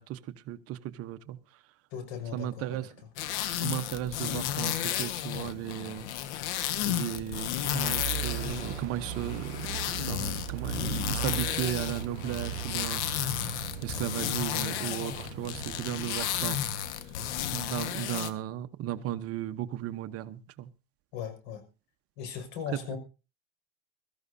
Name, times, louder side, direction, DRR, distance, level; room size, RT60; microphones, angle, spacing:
voice 1, 0.0-1.6 2.3-3.0 3.6-6.1 6.8-9.6 10.0-16.6 17.0-17.1 17.5-20.7 22.7-22.9, right 12 dB, 45° right, 1.0 m, -36 dB
voice 2, 1.9-2.8 21.1-21.6 22.2-23.0, left 7 dB, 60° left, 5.7 m, -38 dB
sound 1, 3.2-18.3, left 11 dB, 80° left, 1.6 m, -33 dB
sound 2, 7.6-16.6, right 18 dB, 75° right, 0.8 m, -39 dB
22.5 x 14.0 x 2.7 m
supercardioid pair, 125°, 34 cm